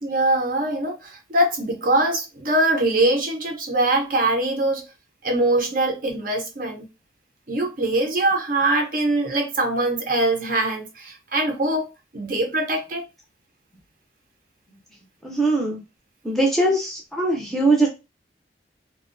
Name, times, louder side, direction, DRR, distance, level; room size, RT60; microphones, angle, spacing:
voice 1, 0.0-4.8 5.2-6.9 7.5-11.9 12.1-13.0, right 2 dB, 50° right, 0.6 m, -22 dB
voice 2, 15.2-15.8 16.2-17.9, right 2 dB, ahead, 0.5 m, -21 dB
2.5 x 2.2 x 2.5 m
head